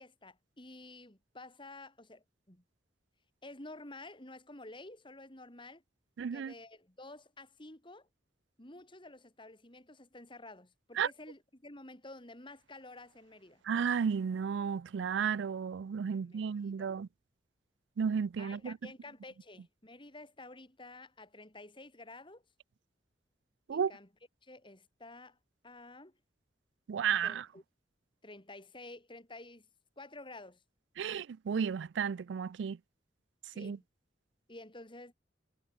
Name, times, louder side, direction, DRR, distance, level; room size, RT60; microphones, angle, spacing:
voice 1, 0.0-2.6 3.4-5.8 6.3-8.1 8.6-13.6 16.1-17.0 18.4-22.4 23.7-24.1 24.4-25.4 25.6-26.2 27.2-27.6 28.2-29.7 30.0-30.6 33.5-33.8 34.5-35.1, left 2 dB, 25° left, 4.0 m, -51 dB
voice 2, 6.2-6.5 11.0-11.1 13.7-17.1 18.0-18.7 23.7-23.9 26.9-27.4 31.0-32.8 33.6-33.8, right 7 dB, 80° right, 0.4 m, -33 dB
head